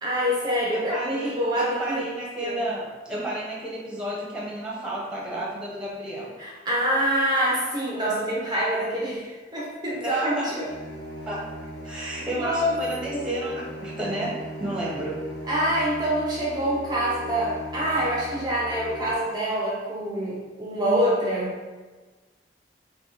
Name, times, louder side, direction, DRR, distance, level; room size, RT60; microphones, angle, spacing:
voice 1, 0.0-2.1 2.4-2.6 6.4-10.7 11.9-12.0 12.3-12.8 13.1-13.2 15.4-21.6, equal, 20° right, -4 dB, 0.5 m, -26 dB
voice 2, 0.7-6.3 10.0-10.6 11.2-11.4 11.8-15.2, right 1 dB, 5° right, -5 dB, 0.9 m, -31 dB
sound 1, 10.6-19.1, equal, 80° left, 1.0 m, -38 dB
5.2 x 2.2 x 3.8 m, 1.3 s
head